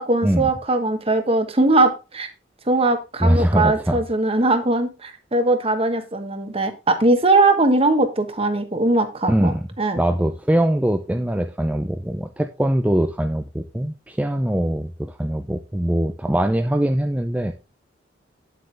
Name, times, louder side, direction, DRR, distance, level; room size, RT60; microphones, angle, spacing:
voice 1, 0.0-2.3 2.7-10.0, right 2 dB, 30° right, 7 dB, 1.3 m, -20 dB
voice 2, 3.2-4.0 9.3-9.7 10.0-17.5, right 1 dB, 10° right, 5 dB, 0.5 m, -22 dB
9.0 x 7.8 x 3.4 m, 0.28 s
head